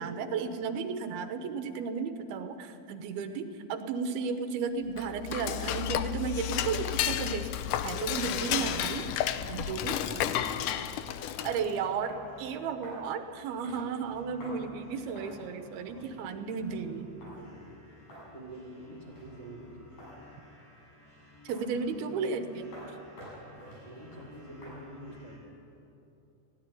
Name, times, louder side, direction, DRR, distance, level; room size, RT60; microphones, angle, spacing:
voice 1, 0.0-7.5 7.8-9.1 9.5-10.0 11.4-17.1 21.4-22.7, right 5 dB, 85° right, 8 dB, 3.0 m, -34 dB
Dishes pots and pans / Cutlery silverware, 4.9-11.8, left 11 dB, 75° left, 1.9 m, -32 dB
sound 1, 8.2-9.2 9.7-10.3 10.7-10.9 11.4-11.6 12.1-12.3 12.8-13.1 13.6-14.1 14.4-14.6 15.2-15.4 15.9-16.2 17.2-17.4 18.1-18.3 19.0-19.4 20.0-20.3 21.5-21.8 22.7-24.8, equal, 60° left, 8.7 m, -49 dB
sound 2, 10.0-25.4, left 1 dB, 25° left, 4.5 m, -56 dB
voice 2, 10.0-10.9 16.7-17.6 18.3-19.9 23.8-25.6, right 1 dB, 10° right, -4 dB, 3.2 m, -46 dB
17.0 x 16.5 x 10.0 m, 2.8 s
omnidirectional pair, 4.3 m